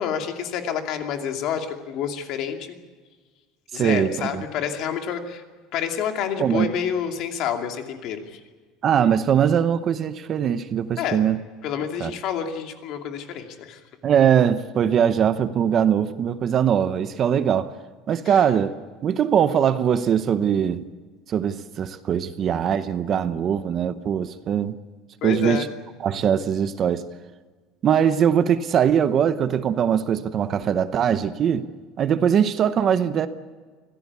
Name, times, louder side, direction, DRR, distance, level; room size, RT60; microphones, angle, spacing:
voice 1, 0.0-2.8 3.7-5.4 5.7-8.4 11.0-11.2 11.6-13.8 18.3-18.4 25.2-25.7, left 8 dB, 45° left, 4 dB, 2.5 m, -28 dB
voice 2, 3.7-4.4 6.4-6.7 8.8-11.4 12.0-12.1 14.0-17.7 18.1-18.7 19.0-20.8 21.3-24.8 25.2-25.7 26.0-27.1 27.8-31.7 32.0-33.3, right 8 dB, 30° right, 12 dB, 0.8 m, -21 dB
25.0 x 17.0 x 8.4 m, 1.4 s
cardioid pair, 170°, 0 cm